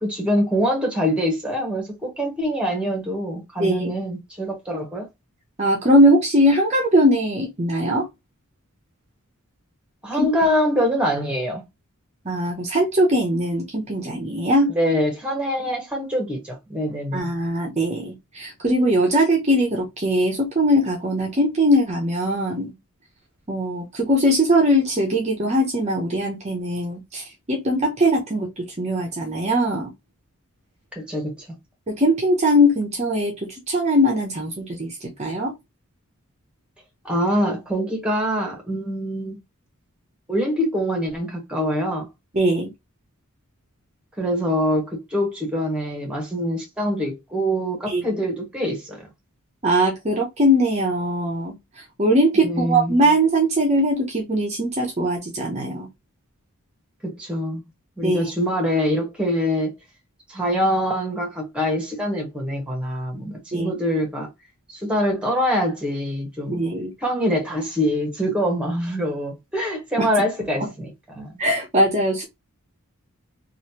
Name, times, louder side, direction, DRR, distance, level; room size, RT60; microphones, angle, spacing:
voice 1, 0.0-5.1 10.0-11.6 14.7-17.3 30.9-31.5 37.0-39.4 40.3-42.1 44.2-49.1 52.4-52.9 57.0-57.6 58.0-59.7 60.3-64.3 64.7-66.6 67.0-71.3, equal, 5° right, 1.2 m, -24 dB
voice 2, 3.6-3.9 5.6-8.1 10.2-10.3 12.2-14.7 17.1-22.7 23.5-29.9 31.9-35.5 42.3-42.7 47.9-48.0 49.6-55.9 58.0-58.3 63.5-63.7 66.5-66.9 70.0-70.1 71.4-72.2, equal, 30° right, 0.6 m, -21 dB
3.0 x 2.5 x 2.8 m
head